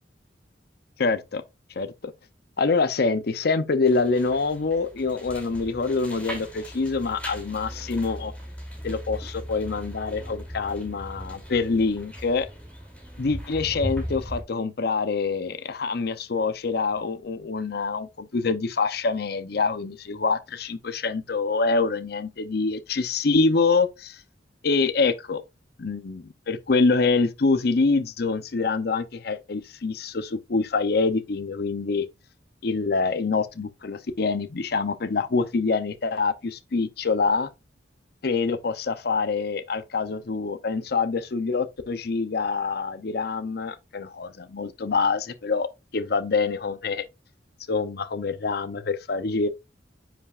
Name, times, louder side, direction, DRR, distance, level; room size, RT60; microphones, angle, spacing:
voice 1, 1.0-1.4 1.8-1.9 2.6-8.3 8.8-12.5 13.2-24.2 24.6-25.4 25.8-32.1 32.6-37.5 38.2-45.7 45.9-47.1 47.7-49.5, left 4 dB, 60° left, 0.6 m, -25 dB
sound 1, 3.8-14.4, equal, 5° left, 2.8 m, -38 dB
9.7 x 5.6 x 2.4 m
head